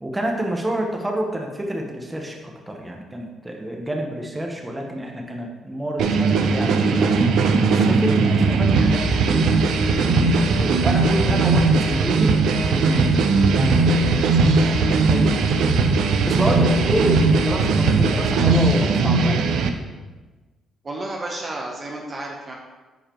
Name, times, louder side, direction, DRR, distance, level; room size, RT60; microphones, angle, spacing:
voice 1, 0.0-7.1 7.6-12.4 12.7-15.7 16.2-19.6, right 1 dB, 15° right, 1 dB, 1.2 m, -28 dB
sound 1, 6.0-19.7, right 3 dB, 80° right, 0.6 m, -18 dB
voice 2, 20.8-22.5, right 2 dB, 35° right, -1 dB, 1.0 m, -31 dB
9.0 x 4.9 x 3.0 m, 1.2 s
cardioid pair, 90°, 0 cm